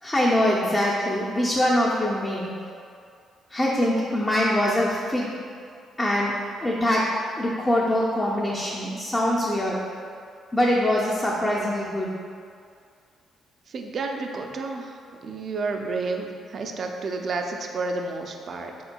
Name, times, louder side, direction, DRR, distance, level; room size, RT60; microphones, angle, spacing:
voice 1, 0.0-2.5 3.5-5.3 6.0-6.3 6.6-7.1 7.4-9.8 10.5-12.1, left 1 dB, 20° left, -5 dB, 0.5 m, -23 dB
voice 2, 13.7-18.7, right 3 dB, 55° right, 3 dB, 0.4 m, -31 dB
5.3 x 4.2 x 2.2 m, 2.3 s
cardioid pair, 90°, 0 cm